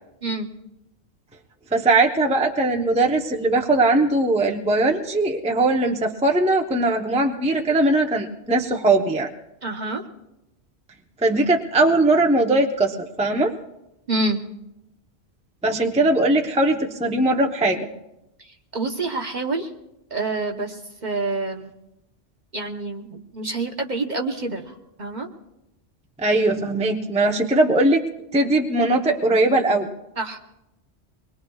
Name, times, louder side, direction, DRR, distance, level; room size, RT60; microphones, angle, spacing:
voice 1, 1.7-9.3 11.2-13.5 15.6-17.9 26.2-28.1 28.3-29.9, right 2 dB, 5° right, 2 dB, 0.7 m, -20 dB
voice 2, 9.6-10.0 14.1-14.4 18.4-18.5 18.7-19.7 20.1-21.7 22.5-25.3 30.2-30.4, right 2 dB, 40° right, 2 dB, 1.1 m, -27 dB
24.0 x 21.0 x 2.4 m, 0.89 s
omnidirectional pair, 1.2 m